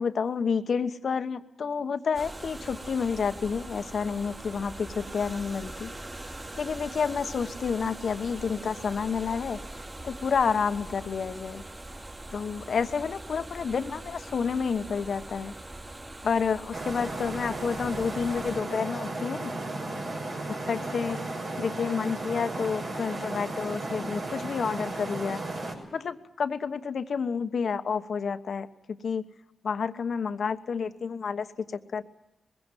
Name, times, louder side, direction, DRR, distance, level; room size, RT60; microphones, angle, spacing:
voice 1, 0.0-5.9 6.6-9.6 10.0-11.6 12.3-15.5 16.2-19.5 20.5-25.4 25.9-29.3 29.6-32.0, left 6 dB, 70° left, 10 dB, 1.1 m, -30 dB
sound 1, 2.1-18.6, right 1 dB, 35° right, 4.0 m, -42 dB
sound 2, 16.7-25.7, right 2 dB, 75° right, 5.9 m, -34 dB
21.0 x 16.5 x 9.1 m, 1.0 s
cardioid pair, 50°, 0 cm